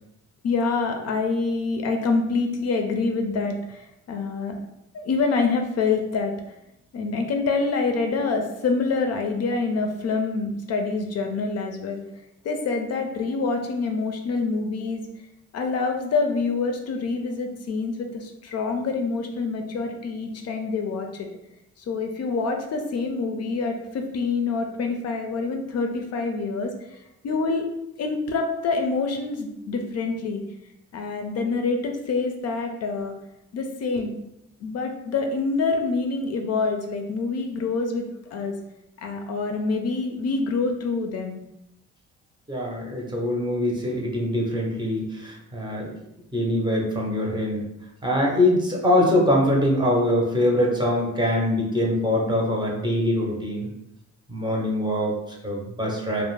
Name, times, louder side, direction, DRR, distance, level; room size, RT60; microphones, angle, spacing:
voice 1, 0.4-4.6 4.9-6.3 6.9-12.0 12.4-15.0 15.5-21.3 21.8-26.7 27.2-27.7 28.0-30.4 30.9-33.1 33.5-34.1 34.6-38.0 38.3-38.6 39.0-41.4, left 4 dB, 55° left, 4 dB, 0.4 m, -26 dB
voice 2, 42.5-45.9 46.3-47.7 48.0-53.7 54.3-56.2, left 1 dB, 15° right, -1 dB, 0.6 m, -23 dB
2.4 x 2.0 x 3.0 m, 0.85 s
cardioid pair, 90°, 30 cm